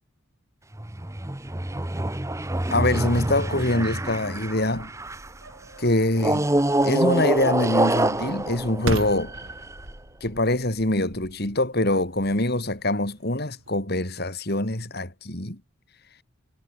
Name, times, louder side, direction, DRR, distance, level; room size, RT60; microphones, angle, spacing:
sound 1, 0.7-5.4 6.2-9.8, right 1 dB, 15° right, 0.9 m, -26 dB
voice 1, 2.7-4.9 5.8-6.5 6.8-9.3 10.2-15.6, left 1 dB, 50° left, 3.8 m, -24 dB
sound 2, 2.9-13.8, right 1 dB, 70° right, 5.3 m, -40 dB
head